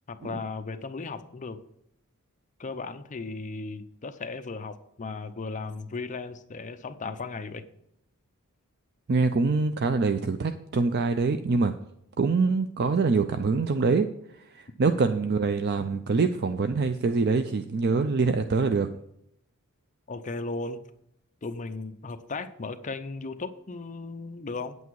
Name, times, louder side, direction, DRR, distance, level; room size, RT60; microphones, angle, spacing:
voice 1, 0.1-1.6 2.6-7.7 20.1-20.8 21.4-24.8, left 3 dB, 35° left, 9 dB, 0.6 m, -36 dB
voice 2, 9.1-11.7 12.2-14.1 14.5-18.9, right 4 dB, 50° right, 9 dB, 0.5 m, -24 dB
9.3 x 8.2 x 4.7 m, 0.77 s
head